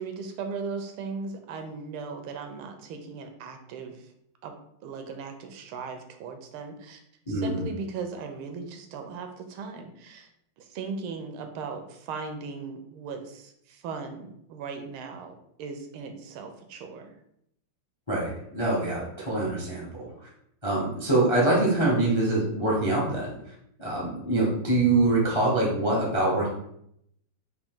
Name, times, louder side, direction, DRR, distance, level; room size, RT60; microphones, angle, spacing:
voice 1, 0.0-4.1 4.4-4.5 4.8-7.0 7.3-10.3 10.6-17.1, right 5 dB, 80° right, 5 dB, 1.5 m, -38 dB
voice 2, 7.3-7.6 18.1-20.3 20.6-23.5 23.8-26.5, right 2 dB, 30° left, -4 dB, 0.5 m, -25 dB
5.0 x 2.9 x 3.6 m, 0.74 s
omnidirectional pair, 2.4 m